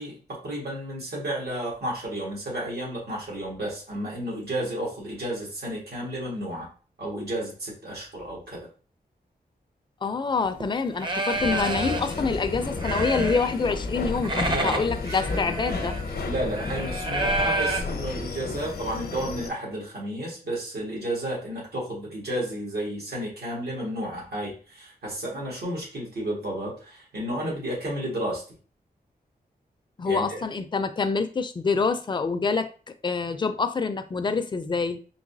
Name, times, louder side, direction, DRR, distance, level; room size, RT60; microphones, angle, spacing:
voice 1, 0.0-6.7 7.0-8.7 14.4-14.8 16.2-28.4 30.0-30.4, right 1 dB, 80° right, 1.8 m, -32 dB
voice 2, 10.0-16.0 30.0-32.7 33.0-35.0, left 4 dB, 30° left, 0.4 m, -26 dB
sound 1, 10.4-10.6 11.0-12.2 12.5-13.7 14.0-17.8, right 2 dB, 30° right, 0.6 m, -29 dB
sound 2, 11.3-19.5, left 3 dB, 75° left, 0.7 m, -32 dB
3.9 x 2.9 x 2.7 m
wide cardioid pair, 90°, 16 cm